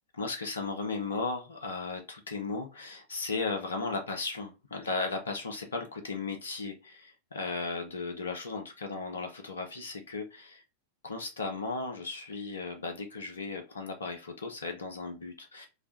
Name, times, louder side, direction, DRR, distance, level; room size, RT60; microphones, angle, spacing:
voice 1, 0.1-10.6 11.0-15.7, left 4 dB, 70° left, 5 dB, 0.5 m, -36 dB
3.2 x 2.1 x 2.4 m, 0.29 s
figure-of-eight pair, 90°, 0 cm